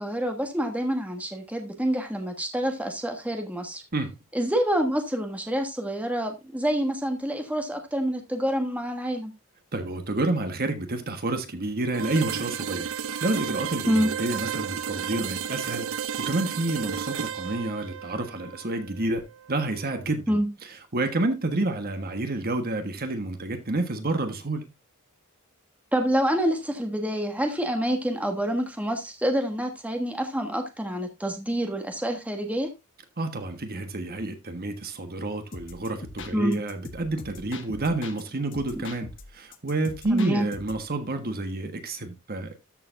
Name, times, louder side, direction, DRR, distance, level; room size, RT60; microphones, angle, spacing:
voice 1, 0.0-3.8 4.3-9.3 13.9-14.1 20.3-20.5 25.9-32.7 36.3-36.6 38.7-38.8 40.1-40.5, equal, 5° right, 1.4 m, -27 dB
voice 2, 9.7-12.9 13.2-15.9 16.2-20.4 20.9-24.6 33.2-42.5, right 2 dB, 45° right, 1.4 m, -29 dB
sound 1, 11.9-19.8, right 7 dB, 65° right, 0.6 m, -33 dB
sound 2, 35.5-38.2 38.5-40.9, left 3 dB, 55° left, 1.1 m, -42 dB
13.0 x 6.9 x 2.6 m
head